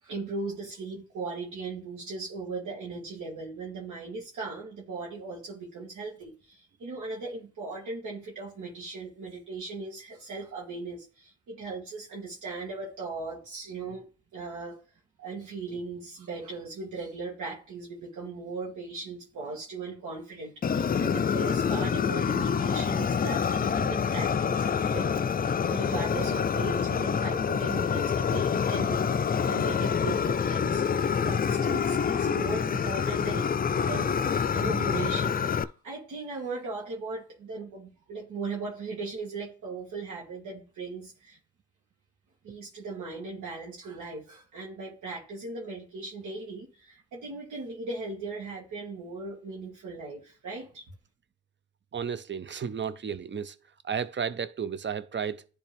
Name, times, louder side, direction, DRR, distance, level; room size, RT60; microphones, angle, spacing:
voice 1, 0.0-14.8 15.2-41.4 42.4-50.8, right 3 dB, 80° right, 1.9 m, -38 dB
Fire, 20.6-35.6, left 7 dB, 30° left, 0.4 m, -27 dB
voice 2, 51.9-53.6 53.8-55.5, right 7 dB, 40° right, 0.6 m, -33 dB
10.5 x 3.5 x 3.4 m
cardioid pair, 65°, 30 cm